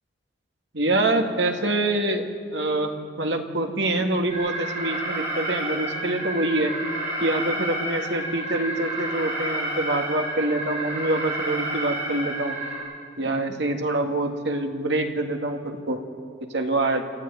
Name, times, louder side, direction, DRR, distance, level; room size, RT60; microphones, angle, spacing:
voice 1, 0.7-2.3 2.5-6.7 7.2-12.6 13.2-16.0 16.5-17.0, right 2 dB, 65° right, 4 dB, 1.9 m, -25 dB
Alarm, 4.3-12.8, right 1 dB, 35° right, 7.3 m, -30 dB
27.5 x 14.0 x 9.5 m, 2.2 s
head